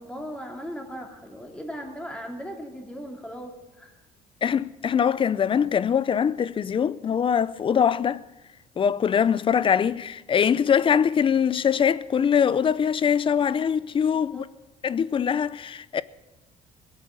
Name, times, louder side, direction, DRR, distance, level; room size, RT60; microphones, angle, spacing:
voice 1, 0.0-4.0 14.3-14.5, equal, 5° left, 2.7 m, -38 dB
voice 2, 4.4-8.2 8.8-14.5 14.8-16.0, left 7 dB, 30° left, 0.5 m, -23 dB
20.5 x 8.3 x 7.2 m
cardioid pair, 110°, 17 cm